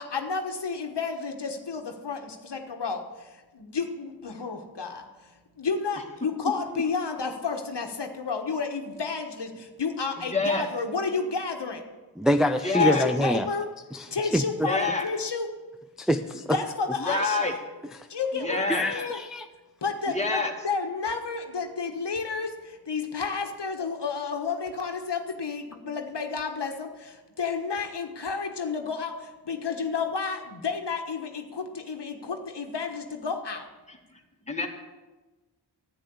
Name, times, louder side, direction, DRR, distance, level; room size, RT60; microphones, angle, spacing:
voice 1, 0.0-11.8 12.8-13.7 14.1-15.5 16.5-17.5 18.1-19.2 19.8-33.7, left 4 dB, 70° left, 4 dB, 1.3 m, -31 dB
voice 2, 10.3-10.7 12.6-13.0 14.6-15.1 17.0-17.5 18.3-18.8 20.1-20.5 33.9-34.0 34.5-34.7, left 4 dB, 15° left, 1 dB, 2.0 m, -26 dB
voice 3, 12.2-13.5 13.9-14.7 16.0-16.6 18.7-19.5, equal, ahead, 6 dB, 0.5 m, -25 dB
11.0 x 9.0 x 7.0 m, 1.2 s
wide cardioid pair, 60°, 42 cm